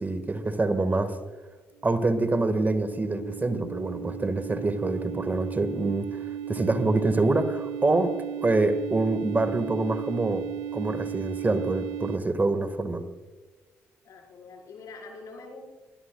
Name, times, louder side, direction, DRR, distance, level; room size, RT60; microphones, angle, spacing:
voice 1, 0.0-1.2 1.8-8.1 8.4-10.4 10.7-13.0, right 2 dB, 30° right, 10 dB, 1.8 m, -26 dB
sound 1, 2.0-12.2, right 10 dB, 80° right, 0.5 m, -36 dB
voice 2, 14.0-15.6, left 3 dB, 65° left, 1 dB, 5.1 m, -44 dB
21.5 x 20.0 x 2.4 m, 1.3 s
hypercardioid pair, 55°, 6 cm